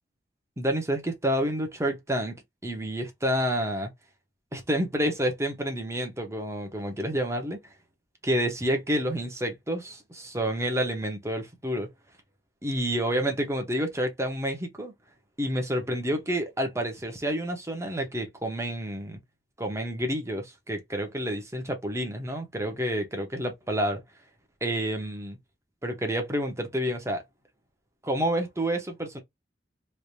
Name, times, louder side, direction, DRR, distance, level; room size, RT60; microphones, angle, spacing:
voice 1, 0.6-2.4 2.6-3.9 4.5-7.6 8.2-11.9 12.6-14.9 15.4-19.2 19.6-24.0 24.6-25.4 25.8-27.2 28.0-29.2, equal, 15° right, 1.1 m, -29 dB
3.3 x 2.8 x 2.7 m
head